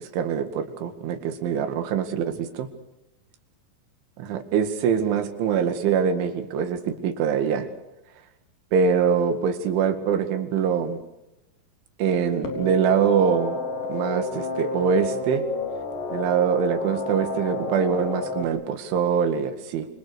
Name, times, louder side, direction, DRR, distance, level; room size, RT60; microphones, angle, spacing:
voice 1, 0.0-2.7 4.2-7.7 8.7-11.0 12.0-13.6 13.9-15.4 16.1-19.9, right 7 dB, 75° right, 8 dB, 4.5 m, -24 dB
sound 1, 12.4-18.4, left 2 dB, 45° left, 4.9 m, -30 dB
28.0 x 25.0 x 6.4 m, 0.94 s
omnidirectional pair, 5.7 m